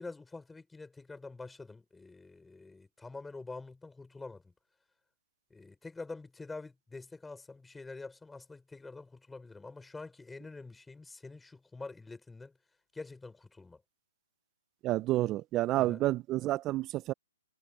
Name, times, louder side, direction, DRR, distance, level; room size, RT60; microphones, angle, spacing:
voice 1, 0.0-4.5 5.5-12.5 12.9-13.8 15.7-16.0, left 3 dB, 5° left, 6.3 m, -46 dB
voice 2, 14.8-17.1, right 16 dB, 25° right, 0.9 m, -29 dB
hypercardioid pair, 140°, 0 cm